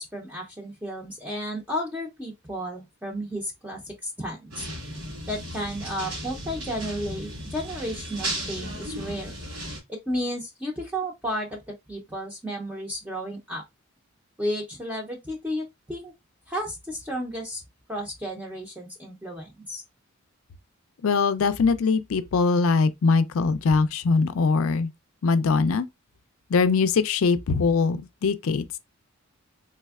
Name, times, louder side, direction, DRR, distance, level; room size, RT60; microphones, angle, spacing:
voice 1, 0.0-4.7 5.3-9.3 9.9-13.6 14.4-16.1 16.5-17.6 17.9-19.8, equal, 5° right, 0.5 m, -33 dB
sound 1, 4.5-9.8, right 1 dB, 75° right, 2.0 m, -35 dB
voice 2, 21.0-24.9 25.2-25.9 26.5-28.8, left 4 dB, 70° left, 0.4 m, -22 dB
3.4 x 3.1 x 2.3 m
head